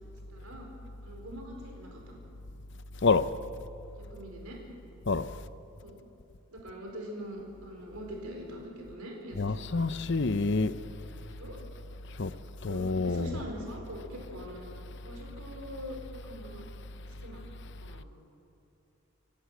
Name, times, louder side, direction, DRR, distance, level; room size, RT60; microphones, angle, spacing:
voice 1, 0.3-0.7 1.0-2.2 3.9-4.6 5.8-6.0 6.5-9.8 11.2-11.6 12.6-14.7 15.0-16.6 17.2-17.5 17.8-18.1, equal, 85° right, 4.6 m, -43 dB
voice 2, 9.4-10.7 12.2-12.3 12.6-13.3, left 4 dB, 55° left, 0.7 m, -27 dB
26.5 x 11.5 x 9.3 m
head